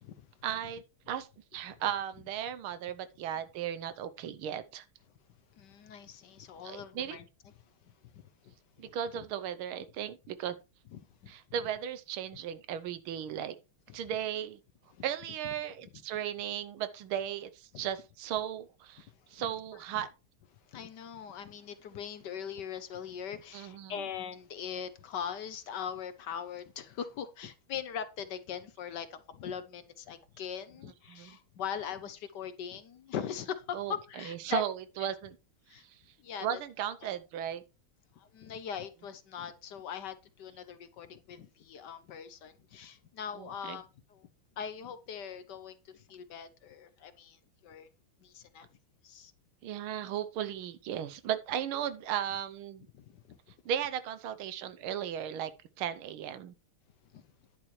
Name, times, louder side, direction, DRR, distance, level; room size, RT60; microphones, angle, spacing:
voice 1, 0.4-4.8 6.6-7.2 8.8-10.6 11.3-13.6 13.9-14.6 15.0-20.1 23.5-24.1 31.1-31.4 33.7-35.4 35.7-35.8 36.4-37.6 43.3-43.8 49.6-52.9 53.6-55.5 55.8-56.5, right 9 dB, 80° right, 1.6 m, -36 dB
voice 2, 5.5-7.2 8.1-8.5 10.9-11.3 13.9-14.0 17.7-17.8 19.3-19.5 19.9-20.0 20.7-34.6 35.0-35.1 35.7-35.9 36.2-36.5 37.0-37.2 38.2-44.3 44.6-47.9 48.2-48.7 49.0-49.3 52.9-53.4 57.1-57.3, left 8 dB, 65° left, 1.2 m, -41 dB
10.5 x 8.6 x 3.2 m
omnidirectional pair, 2.3 m